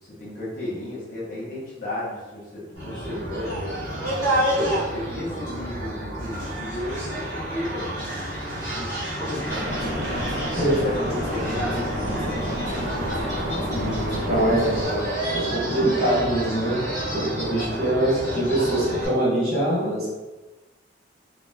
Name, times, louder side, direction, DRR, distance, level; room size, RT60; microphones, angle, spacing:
voice 1, 0.0-3.7 4.5-7.9 8.7-9.7 10.1-10.5 10.8-13.2 14.3-14.4, left 1 dB, 45° left, -7 dB, 0.8 m, -34 dB
sound 1, 2.8-19.1, right 1 dB, 15° left, 1.1 m, -29 dB
sound 2, 9.5-14.8, equal, 75° right, 0.7 m, -29 dB
voice 2, 13.7-16.8 17.1-20.1, right 1 dB, 35° right, -11 dB, 1.4 m, -24 dB
2.9 x 2.2 x 2.3 m, 1.2 s
head